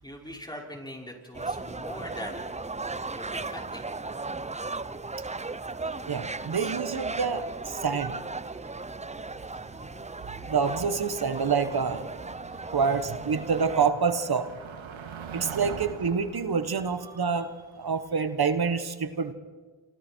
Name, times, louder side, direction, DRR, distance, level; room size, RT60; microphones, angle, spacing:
voice 1, 0.0-2.5 3.1-3.9 9.6-9.9, equal, 10° left, -1 dB, 6.0 m, -41 dB
sound 1, 1.3-13.9, right 3 dB, 15° right, 0.7 m, -36 dB
voice 2, 6.1-8.1 10.5-12.1 12.7-14.5 15.3-17.5 17.8-19.3, right 5 dB, 50° right, 10 dB, 1.6 m, -27 dB
Motor vehicle (road), 8.0-18.0, right 6 dB, 75° right, 2.3 m, -45 dB
27.5 x 25.0 x 4.7 m, 1.4 s
cardioid pair, 55°, 48 cm